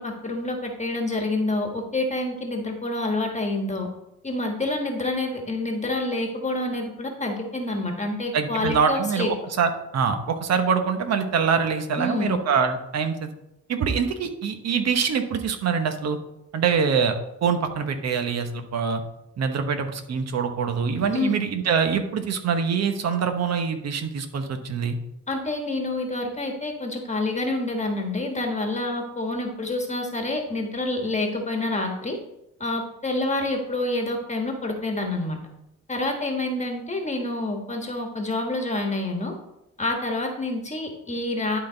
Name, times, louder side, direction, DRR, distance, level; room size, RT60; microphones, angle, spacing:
voice 1, 0.0-3.9 4.2-9.3 12.0-12.4 21.1-21.4 25.3-32.2 32.6-35.4 35.9-39.3 39.8-41.6, left 2 dB, 25° left, 2 dB, 1.4 m, -27 dB
voice 2, 8.3-13.3 13.7-16.2 16.5-17.2 17.4-19.0 19.4-25.0, right 6 dB, 60° right, 7 dB, 1.1 m, -24 dB
11.5 x 4.0 x 3.9 m, 0.87 s
cardioid pair, 90°, 30 cm